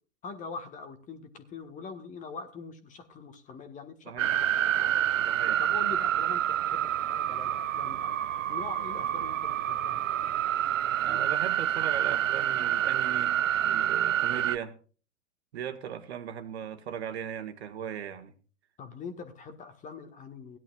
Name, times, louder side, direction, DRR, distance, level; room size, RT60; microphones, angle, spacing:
voice 1, 0.2-4.5 4.7-5.2 5.6-6.8 7.1-10.1 18.8-20.6, left 5 dB, 20° left, 1.5 m, -43 dB
sound 1, 4.2-14.6, right 11 dB, 75° right, 0.5 m, -28 dB
voice 2, 5.2-5.6 11.0-14.8 15.5-18.3, right 9 dB, 55° right, 1.8 m, -38 dB
17.0 x 11.0 x 2.4 m
figure-of-eight pair, 110°, 38 cm